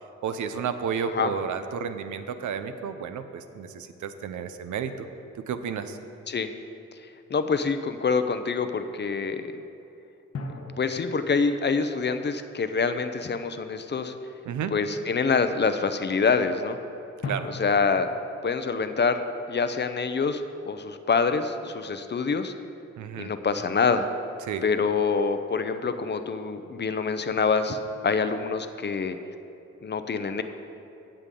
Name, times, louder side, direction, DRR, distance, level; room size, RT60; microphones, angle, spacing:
voice 1, 0.2-5.1 5.3-6.0 14.5-14.7 17.2-17.5 23.0-23.3 24.4-24.6, right 7 dB, 85° right, 9 dB, 0.7 m, -32 dB
voice 2, 7.3-9.6 10.5-14.1 14.7-16.8 17.4-18.1 18.4-19.2 19.5-22.5 23.2-24.1 24.6-27.8 28.0-29.2 29.8-30.4, left 5 dB, 35° left, 9 dB, 0.6 m, -26 dB
sound 1, 10.3-13.2 17.2-20.5, left 2 dB, 55° left, 1.1 m, -41 dB
16.5 x 6.8 x 3.8 m, 2.9 s
cardioid pair, 90°, 29 cm